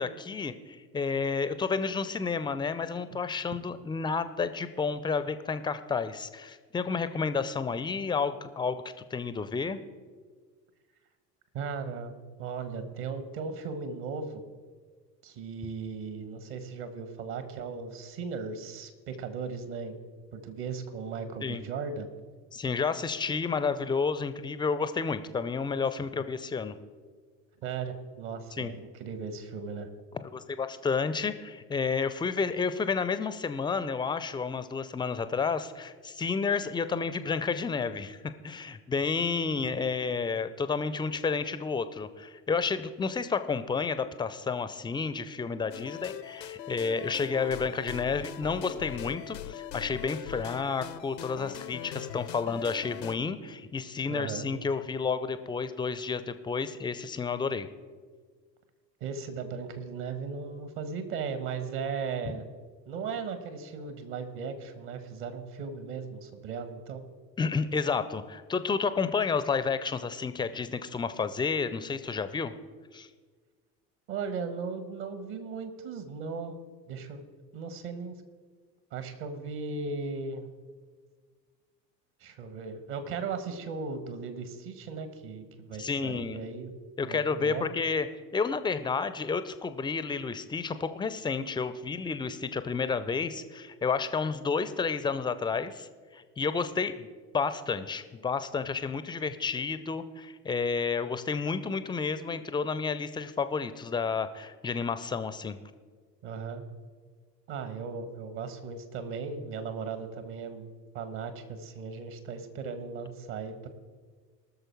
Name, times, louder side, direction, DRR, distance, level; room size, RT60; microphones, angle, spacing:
voice 1, 0.0-9.8 21.4-21.7 22.5-26.8 28.5-28.7 30.2-38.2 38.4-57.7 67.4-72.5 72.9-73.1 85.8-86.4 87.0-88.1 88.3-97.1 97.3-105.6, left 5 dB, 10° left, 12 dB, 0.4 m, -31 dB
voice 2, 11.5-12.1 12.4-14.4 15.2-20.0 20.3-22.1 27.6-29.9 54.1-54.5 59.0-62.4 62.9-67.1 74.1-76.6 76.9-77.2 77.5-78.1 78.9-80.5 82.2-86.7 87.0-87.7 106.2-106.6 107.5-113.7, right 5 dB, 50° right, 10 dB, 1.5 m, -37 dB
sound 1, 45.7-53.2, left 10 dB, 80° left, 0.7 m, -41 dB
19.0 x 6.6 x 4.6 m, 1.5 s
figure-of-eight pair, 70°, 49 cm